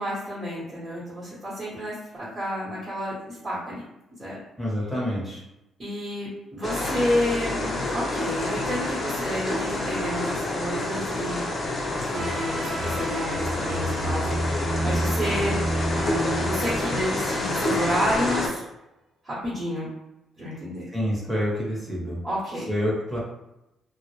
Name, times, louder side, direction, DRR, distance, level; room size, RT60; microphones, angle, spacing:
voice 1, 0.0-3.8 4.2-4.4 5.8-11.4 12.0-15.6 15.9-18.6 19.2-19.9 20.4-20.9 22.2-22.7, equal, 35° right, -8 dB, 0.9 m, -30 dB
voice 2, 4.6-5.4 20.9-22.2 22.7-23.2, equal, ahead, -5 dB, 0.7 m, -27 dB
sound 1, 6.6-18.5, left 2 dB, 40° left, 0.6 m, -28 dB
sound 2, 12.1-17.9, right 1 dB, 55° right, 0.6 m, -30 dB
2.1 x 2.0 x 3.0 m, 0.91 s
cardioid pair, 90°, 0 cm